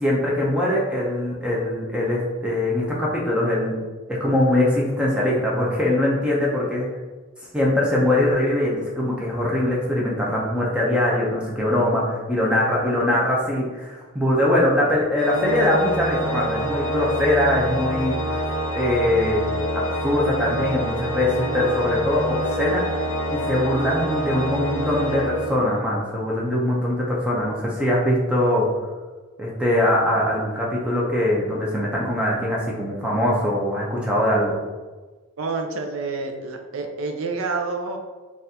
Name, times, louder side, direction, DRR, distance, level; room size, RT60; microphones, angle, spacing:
voice 1, 0.0-3.8 4.1-6.9 7.5-18.4 18.7-19.4 19.7-22.8 23.3-28.7 29.4-34.6, left 1 dB, 5° right, -4 dB, 0.5 m, -22 dB
Organ, 15.2-26.0, equal, 70° left, 0.4 m, -27 dB
voice 2, 35.4-38.0, right 3 dB, 80° right, 4 dB, 0.5 m, -28 dB
3.9 x 2.4 x 2.7 m, 1.3 s
head